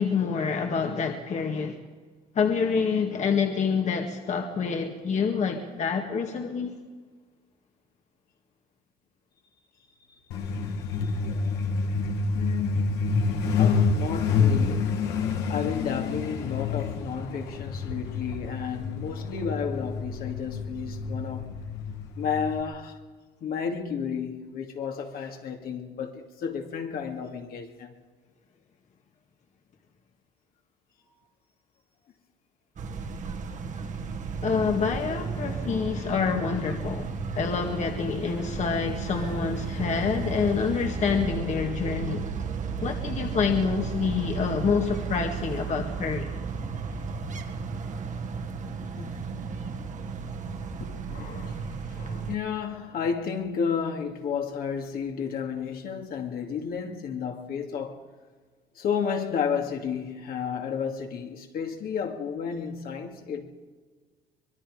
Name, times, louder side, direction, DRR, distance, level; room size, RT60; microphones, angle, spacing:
voice 1, 0.0-1.8 2.4-6.8 34.4-42.2 42.8-46.3, left 5 dB, 45° left, 1.9 m, -27 dB
Truck, 10.3-22.6, left 4 dB, 85° left, 2.4 m, -28 dB
voice 2, 12.3-15.0 15.5-21.5 22.2-23.0 23.4-27.9 49.0-49.4 50.8-58.0 58.8-63.5, left 7 dB, 60° left, 2.4 m, -32 dB
sound 1, 32.8-52.4, right 5 dB, 50° right, 1.9 m, -34 dB
25.0 x 21.0 x 5.0 m
cardioid pair, 110°, 17 cm